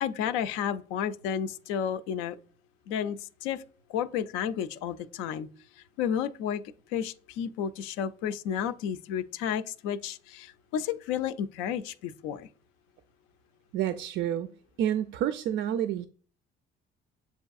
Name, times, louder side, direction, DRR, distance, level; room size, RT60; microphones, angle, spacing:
voice 1, 0.0-2.4 2.9-3.6 3.9-5.5 5.8-6.6 6.9-12.5, left 8 dB, 90° left, 0.4 m, -32 dB
voice 2, 13.7-14.5 14.8-16.1, right 10 dB, 70° right, 0.4 m, -29 dB
7.6 x 2.6 x 2.3 m
supercardioid pair, 80°, 20 cm